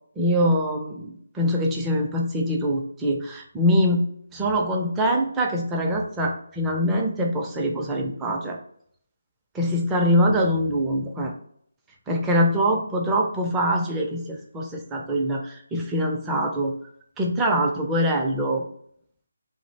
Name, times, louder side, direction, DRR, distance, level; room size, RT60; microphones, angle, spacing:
voice 1, 0.2-4.1 4.3-8.6 9.5-11.3 12.1-16.7 17.2-18.6, equal, 10° right, 0 dB, 0.4 m, -23 dB
2.4 x 2.0 x 2.8 m, 0.65 s
figure-of-eight pair, 155°, 0 cm